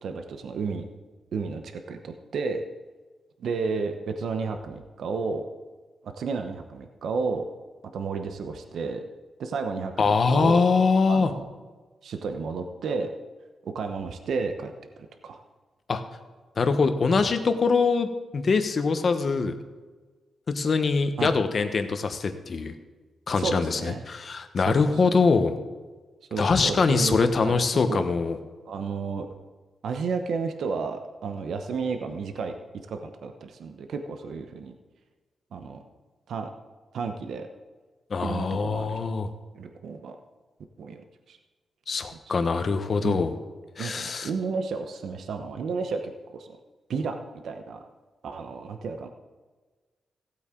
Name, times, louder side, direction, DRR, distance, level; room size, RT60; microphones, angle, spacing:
voice 1, 0.0-0.9 1.3-2.6 3.4-5.4 6.0-7.5 7.9-9.0 9.4-10.7 11.1-11.4 12.0-13.1 13.6-15.4 17.1-17.3 21.2-21.3 23.3-24.0 24.6-24.8 26.3-27.2 27.4-27.6 27.9-28.1 28.7-29.3 29.8-32.5 32.9-34.7 35.5-35.8 36.3-36.5 36.9-37.5 38.2-39.0 39.5-40.2 40.8-41.0 41.3-41.4 42.1-42.4 43.0-43.3 43.8-46.6 46.9-47.2 47.4-47.8 48.2-49.1, right 4 dB, 75° right, 6 dB, 0.8 m, -32 dB
voice 2, 10.0-11.3 15.9-16.0 16.6-18.1 18.3-19.5 20.5-22.7 23.3-25.5 26.4-28.4 38.1-39.3 41.9-43.3 43.8-44.3, left 4 dB, 50° left, 8 dB, 1.0 m, -23 dB
15.5 x 8.5 x 3.8 m, 1.3 s
cardioid pair, 95°, 0 cm